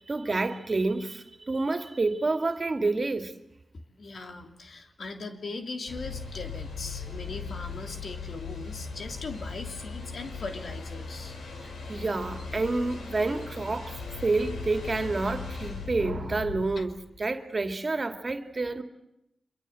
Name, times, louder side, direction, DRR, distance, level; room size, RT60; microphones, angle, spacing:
voice 1, 0.0-3.3 11.9-16.9 17.2-18.8, right 3 dB, 45° right, 2.5 m, -29 dB
voice 2, 3.7-11.4 16.8-16.9, left 3 dB, 70° left, 2.9 m, -39 dB
sound 1, 5.9-16.7, left 4 dB, 85° left, 4.4 m, -38 dB
25.5 x 22.5 x 7.8 m
cardioid pair, 45°, 0 cm